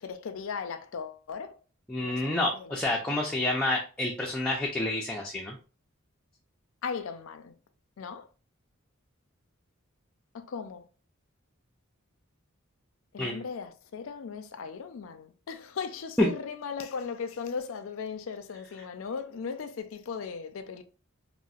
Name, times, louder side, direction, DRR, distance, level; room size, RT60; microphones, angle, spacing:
voice 1, 0.0-1.6 2.0-2.8 3.1-3.2 6.8-7.5 8.0-8.3 10.3-10.9 13.1-20.8, left 5 dB, 70° left, 0.4 m, -37 dB
voice 2, 1.9-5.6 13.2-13.4 16.2-16.3, left 2 dB, 5° left, 0.4 m, -28 dB
3.8 x 2.0 x 2.4 m
head